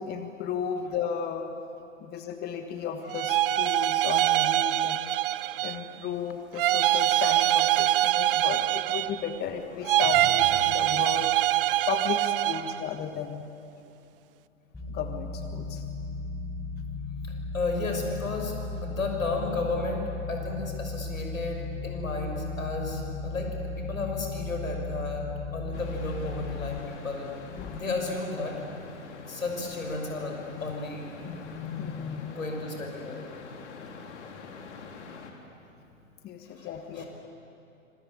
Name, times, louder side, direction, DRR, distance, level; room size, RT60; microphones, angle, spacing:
voice 1, 0.0-1.5 2.0-5.0 5.6-11.3 11.9-13.4 14.9-15.8 27.5-27.8 30.5-30.7 31.2-32.4 36.2-37.0, left 7 dB, 25° left, 6 dB, 1.6 m, -34 dB
sound 1, 3.1-5.9 6.6-9.4 9.8-12.8, right 14 dB, 45° right, 0.6 m, -24 dB
sound 2, 14.7-26.8, left 3 dB, 5° left, 3.6 m, -36 dB
voice 2, 17.2-18.5 18.8-25.2 25.5-27.3 27.7-28.5 29.2-31.1 32.3-33.2 35.4-35.5 36.4-36.7 36.9-37.1, left 3 dB, 80° left, 2 dB, 6.5 m, -33 dB
sound 3, 25.7-35.3, left 5 dB, 55° left, 3.7 m, -45 dB
26.0 x 25.5 x 8.7 m, 2.8 s
figure-of-eight pair, 110°, 40 cm